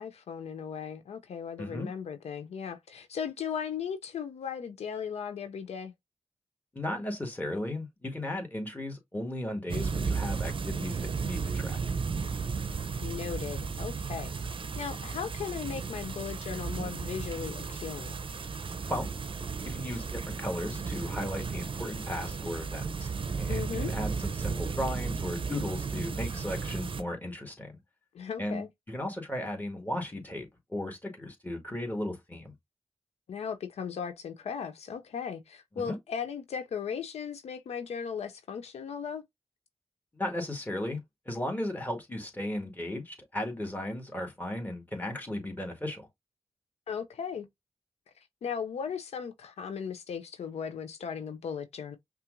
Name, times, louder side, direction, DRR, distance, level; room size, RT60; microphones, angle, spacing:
voice 1, 0.0-5.9 13.0-18.2 23.5-23.9 28.1-28.7 33.3-39.2 46.9-47.5 48.4-52.0, left 7 dB, 85° left, 0.5 m, -37 dB
voice 2, 6.7-11.8 18.9-19.1 19.6-27.8 28.4-32.5 35.8-36.0 40.1-41.0 41.3-46.1, left 1 dB, 15° left, 1.8 m, -36 dB
sound 1, 9.7-27.0, right 5 dB, 55° right, 0.5 m, -34 dB
5.5 x 2.4 x 2.5 m
cardioid pair, 45°, 11 cm